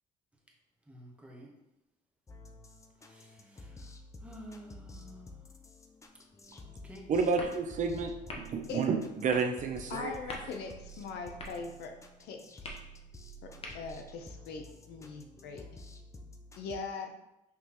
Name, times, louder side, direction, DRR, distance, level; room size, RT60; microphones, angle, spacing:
voice 1, 0.9-1.5 3.0-3.9 4.2-5.4 6.6-7.1, equal, 5° right, -1 dB, 1.0 m, -51 dB
sound 1, 2.3-16.8, equal, 20° left, 0.4 m, -51 dB
sound 2, 6.0-14.1, left 2 dB, 35° left, 1.0 m, -49 dB
voice 2, 7.1-10.1, right 5 dB, 45° right, 5 dB, 0.6 m, -30 dB
voice 3, 9.9-12.7 13.4-15.7 16.6-17.1, left 4 dB, 80° left, 4 dB, 0.7 m, -41 dB
5.9 x 3.0 x 3.0 m, 0.90 s
cardioid pair, 110°, 17 cm